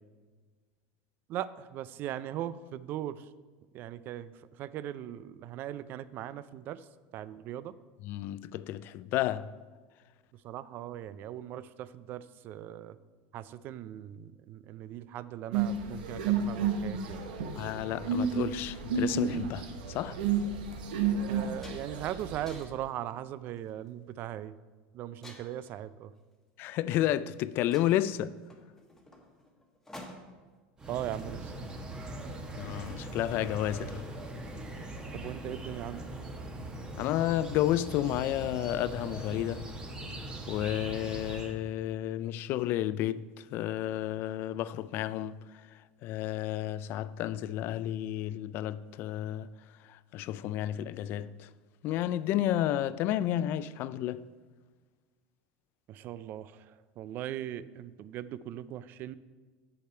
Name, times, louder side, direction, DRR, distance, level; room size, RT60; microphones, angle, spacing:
voice 1, 1.3-3.3 3.7-6.9 7.1-7.7 10.4-13.0 13.3-17.2 21.3-24.5 24.9-26.1 30.9-31.5 35.1-36.0 55.9-59.2, right 12 dB, 45° right, 0.4 m, -39 dB
voice 2, 8.0-9.5 17.6-20.2 26.6-28.3 32.6-34.0 37.0-39.7 40.5-45.4 46.0-49.5 49.9-51.5 51.8-54.2, left 12 dB, 50° left, 0.3 m, -31 dB
sound 1, 15.5-22.6, right 6 dB, 90° right, 1.1 m, -31 dB
sound 2, 20.2-20.3 20.9-21.0 21.3-22.1 22.5-22.9 23.6-23.9 25.2-25.8 26.9-27.0 27.3-27.4 27.7-30.5, left 1 dB, 10° left, 1.2 m, -50 dB
sound 3, 30.8-41.5, right 1 dB, 20° right, 1.1 m, -41 dB
8.4 x 6.8 x 4.5 m
supercardioid pair, 130°, 5 cm